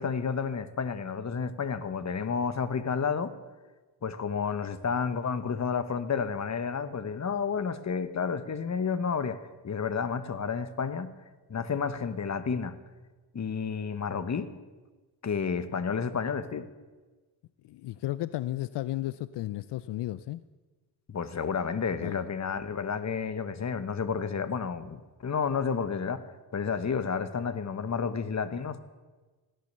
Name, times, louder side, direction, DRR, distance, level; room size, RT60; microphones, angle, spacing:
voice 1, 0.0-3.3 4.0-9.4 9.6-11.1 11.5-12.8 13.3-14.5 15.2-16.7 21.1-26.2 26.5-28.8, left 6 dB, 40° left, 1.2 m, -31 dB
voice 2, 17.6-20.4 22.0-22.2, left 15 dB, 80° left, 0.5 m, -33 dB
16.5 x 10.5 x 6.7 m
cardioid pair, 65°, 41 cm